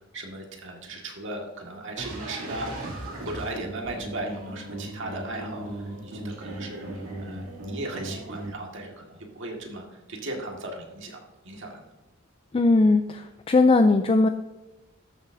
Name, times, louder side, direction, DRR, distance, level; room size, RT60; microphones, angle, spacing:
voice 1, 0.1-6.8 7.2-11.2 11.4-11.9, right 2 dB, 65° right, 1 dB, 1.8 m, -37 dB
sound 1, 2.0-8.5, right 1 dB, 80° right, 2.6 m, -37 dB
voice 2, 12.5-14.3, left 3 dB, 25° left, 8 dB, 0.4 m, -19 dB
13.5 x 7.2 x 2.7 m, 1.1 s
head